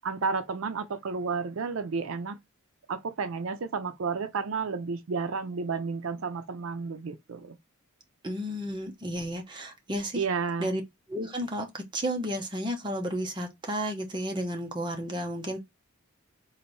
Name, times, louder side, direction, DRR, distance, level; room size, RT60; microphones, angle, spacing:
voice 1, 0.0-2.4 2.9-7.6 10.2-10.7, right 5 dB, 65° right, 0.5 m, -31 dB
voice 2, 8.2-10.2 10.6-10.8 11.1-15.6, equal, 20° right, 0.7 m, -32 dB
4.0 x 2.6 x 3.1 m
head